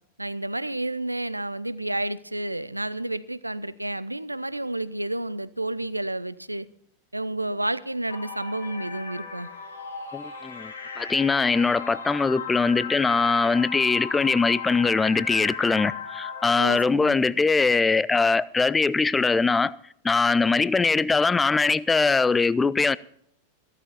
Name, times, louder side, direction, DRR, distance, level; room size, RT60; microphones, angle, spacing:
voice 1, 0.2-6.7 7.1-9.5 16.6-17.2, right 1 dB, 85° right, 0.5 m, -30 dB
sound 1, 8.1-16.9, left 6 dB, 75° left, 2.2 m, -36 dB
voice 2, 10.1-19.8 20.0-23.0, left 4 dB, 10° left, 0.5 m, -22 dB
14.5 x 13.0 x 4.1 m
figure-of-eight pair, 90°, 0 cm